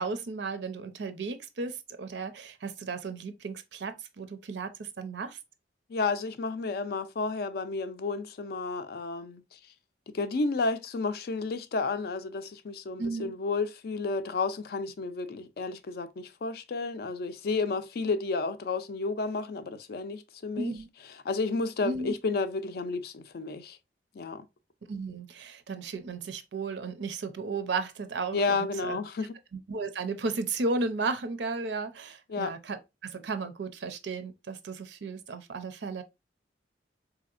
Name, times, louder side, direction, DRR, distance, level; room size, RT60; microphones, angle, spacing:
voice 1, 0.0-5.4 13.0-13.3 20.5-20.9 21.8-22.1 24.9-29.0 29.5-36.0, right 3 dB, 75° right, 0.5 m, -34 dB
voice 2, 5.9-9.6 10.1-20.7 21.2-23.8 24.1-24.5 28.3-29.4 32.3-32.5, left 3 dB, 55° left, 0.4 m, -31 dB
4.0 x 2.8 x 2.4 m
head